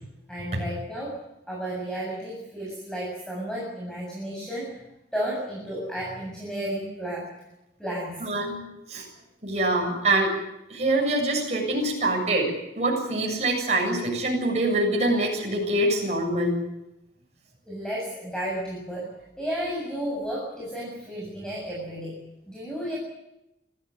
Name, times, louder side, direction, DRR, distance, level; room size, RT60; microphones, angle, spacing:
voice 1, 0.3-1.2 1.5-4.8 5.1-7.3 7.8-8.2 8.7-8.8 17.6-22.2 22.5-23.0, equal, 5° left, -4 dB, 7.2 m, -33 dB
voice 2, 8.2-8.6 8.9-9.1 9.4-10.4 10.7-16.6, right 1 dB, 40° right, -1 dB, 7.5 m, -25 dB
26.0 x 15.0 x 9.7 m, 0.91 s
head